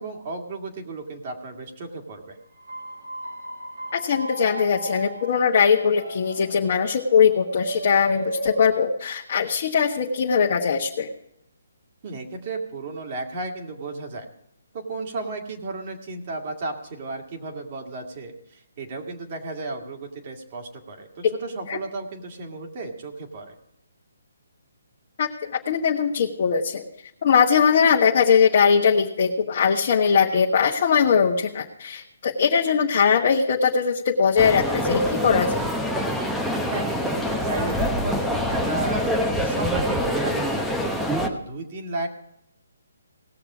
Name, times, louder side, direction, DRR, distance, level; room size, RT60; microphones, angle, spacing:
voice 1, 0.0-2.4 12.0-14.3 14.7-23.6 36.7-40.7 41.3-42.1, right 3 dB, 40° right, 2 dB, 2.2 m, -34 dB
sound 1, 2.5-8.7, right 3 dB, 85° right, 4.2 m, -36 dB
voice 2, 3.9-11.1 21.7-21.8 25.2-26.8 27.2-35.7, left 6 dB, 50° left, -1 dB, 1.2 m, -20 dB
sound 2, 34.4-41.3, equal, ahead, 0.9 m, -25 dB
18.5 x 6.7 x 5.0 m, 0.78 s
hypercardioid pair, 150°, 0 cm